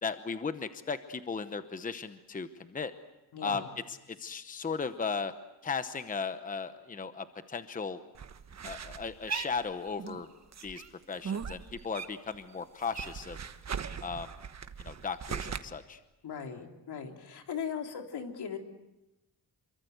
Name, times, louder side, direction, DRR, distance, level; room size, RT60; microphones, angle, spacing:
voice 1, 0.0-2.9 3.4-5.3 5.6-8.0 8.6-10.3 10.6-13.4 14.0-14.3 14.8-16.0, left 5 dB, 20° left, 10 dB, 0.9 m, -36 dB
voice 2, 3.3-3.7 16.2-18.6, left 7 dB, 75° left, 4 dB, 3.6 m, -38 dB
sound 1, 8.1-10.2 10.5-12.4 12.6-15.6, right 7 dB, 40° right, 1.3 m, -39 dB
27.5 x 24.0 x 8.0 m, 0.96 s
wide cardioid pair, 180°, 39 cm